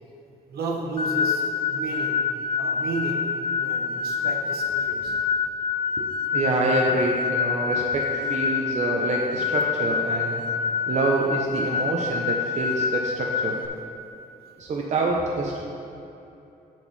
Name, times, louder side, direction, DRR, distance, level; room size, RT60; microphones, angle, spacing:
voice 1, 0.5-2.2 2.6-3.3 3.6-5.2 8.2-8.5, right 2 dB, 75° right, 0 dB, 1.4 m, -33 dB
sound 1, 1.0-13.7, left 6 dB, 30° left, 0.7 m, -26 dB
voice 2, 6.0-10.4 10.9-13.6 14.6-15.6, right 2 dB, 45° right, -1 dB, 0.8 m, -26 dB
7.6 x 7.3 x 4.1 m, 2.7 s
cardioid pair, 135°, 16 cm